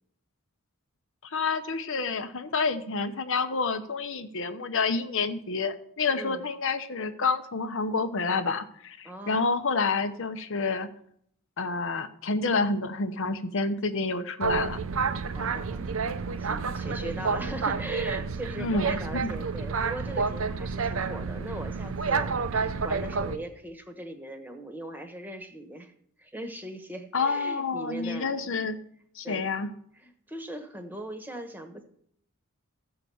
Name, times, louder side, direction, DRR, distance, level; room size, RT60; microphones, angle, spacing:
voice 1, 1.2-10.9 11.6-14.8 18.6-19.3 27.1-28.8 29.1-29.7, left 4 dB, 60° left, 9 dB, 0.8 m, -29 dB
voice 2, 9.0-9.4 15.3-16.0 16.4-25.9 26.2-28.6 29.2-29.6 30.0-31.8, right 1 dB, 10° right, 7 dB, 1.1 m, -39 dB
Boat Water vehicle, 14.4-23.4, right 5 dB, 65° right, 0.6 m, -29 dB
14.5 x 4.8 x 7.0 m, 0.68 s
head